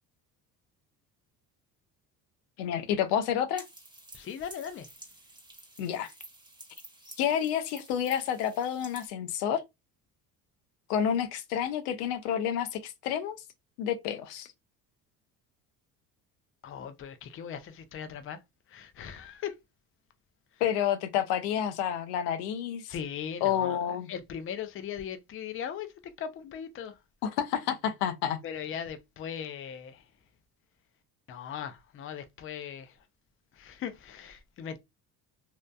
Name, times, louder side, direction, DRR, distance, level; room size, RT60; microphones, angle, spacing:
voice 1, 2.6-3.6 5.8-6.1 7.2-9.6 10.9-13.4 13.8-14.5 20.6-22.9 23.4-24.1 27.2-28.4, left 9 dB, 80° left, 0.5 m, -29 dB
sound 1, 3.6-9.1, right 2 dB, 10° right, 0.9 m, -51 dB
voice 2, 4.1-4.9 16.6-18.4 18.7-19.6 20.5-20.6 22.9-23.8 24.1-27.0 28.4-30.1 31.3-33.1 33.5-34.8, left 8 dB, 30° left, 0.4 m, -39 dB
2.6 x 2.1 x 2.2 m
hypercardioid pair, 65°, 46 cm